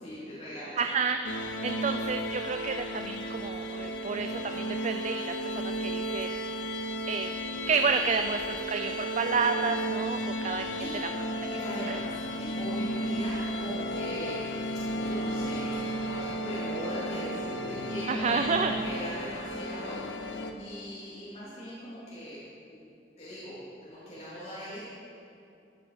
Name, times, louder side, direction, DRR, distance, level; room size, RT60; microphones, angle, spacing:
voice 1, 0.0-0.8 8.9-9.1 10.2-10.5 10.8-11.0 11.5-14.6 14.9-22.4 22.7-22.8 23.2-24.8, equal, 35° left, -10 dB, 3.2 m, -40 dB
voice 2, 0.8-6.3 7.1-7.3 7.7-10.7 11.0-11.1 11.9-12.0 18.1-18.7, right 5 dB, 40° right, 7 dB, 0.4 m, -30 dB
sound 1, 1.2-20.5, equal, 75° left, 1.0 m, -34 dB
14.0 x 9.5 x 5.1 m, 2.6 s
head